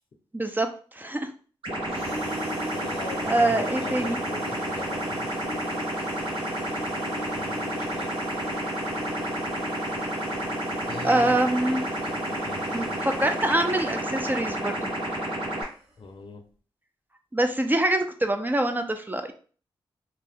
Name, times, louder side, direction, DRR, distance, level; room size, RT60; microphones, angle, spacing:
voice 1, 0.3-1.3 3.3-4.2 11.0-11.8 12.7-14.9 17.3-19.3, right 1 dB, 20° right, 7 dB, 0.4 m, -25 dB
sound 1, 1.6-15.6, right 1 dB, 65° right, 1.2 m, -30 dB
sound 2, 1.8-15.8, equal, 90° right, 0.8 m, -41 dB
voice 2, 2.6-5.3 7.3-8.2 10.9-11.4 12.0-13.1 16.0-16.4, left 4 dB, 60° left, 5 dB, 0.6 m, -41 dB
2.7 x 2.1 x 3.4 m, 0.41 s
cardioid pair, 50°, 10 cm